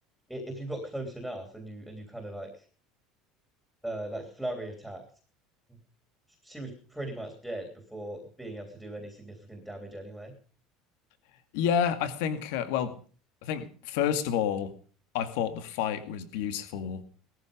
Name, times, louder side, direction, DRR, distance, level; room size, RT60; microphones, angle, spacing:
voice 1, 0.3-2.7 3.8-5.0 5.7-5.8 6.4-10.3, right 1 dB, ahead, 4 dB, 3.1 m, -39 dB
voice 2, 11.5-12.9 13.4-14.7 15.1-17.0, left 8 dB, 75° left, 10 dB, 2.2 m, -29 dB
19.0 x 14.0 x 5.1 m, 0.42 s
cardioid pair, 175°, 0 cm